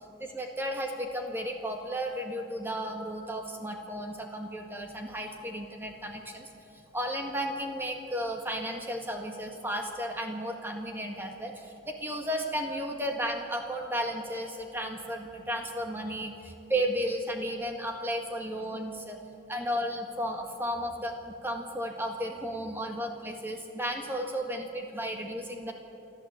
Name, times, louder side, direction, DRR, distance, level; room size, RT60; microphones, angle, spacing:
voice 1, 0.2-6.5 6.9-19.2 19.5-25.7, equal, 10° right, 2 dB, 1.7 m, -34 dB
28.0 x 12.0 x 8.1 m, 2.8 s
head